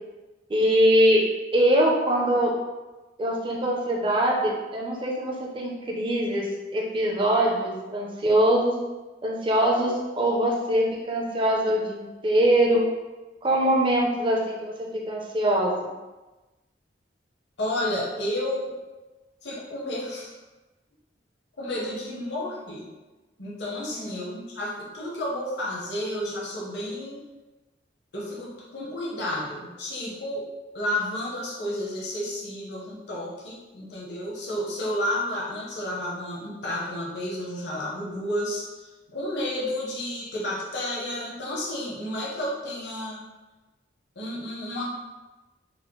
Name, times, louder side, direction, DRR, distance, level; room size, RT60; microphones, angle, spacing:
voice 1, 0.5-1.2 1.5-2.5 3.2-8.7 9.2-12.8 13.4-15.9 23.9-24.4, right 1 dB, 30° right, -2 dB, 0.5 m, -23 dB
voice 2, 17.6-18.8 19.4-20.3 21.6-22.9 23.4-27.2 28.1-30.5 30.7-43.2 44.2-44.9, left 1 dB, 65° left, -5 dB, 0.8 m, -31 dB
4.0 x 2.0 x 3.0 m, 1.1 s
head